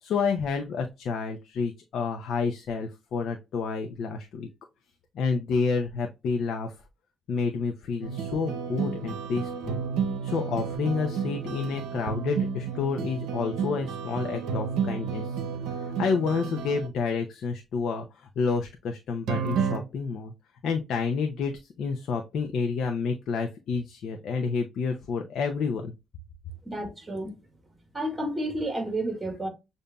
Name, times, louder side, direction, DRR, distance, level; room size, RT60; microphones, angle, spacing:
voice 1, 0.0-4.5 5.1-6.7 7.3-9.8 10.2-15.3 15.7-20.3 20.6-25.9, left 5 dB, 70° left, 0.6 m, -29 dB
sound 1, 8.0-16.9 19.3-19.8, right 6 dB, 90° right, 0.7 m, -31 dB
voice 2, 26.7-27.3 27.9-29.5, right 1 dB, 15° right, 1.8 m, -31 dB
6.7 x 2.6 x 2.2 m
cardioid pair, 90°, 0 cm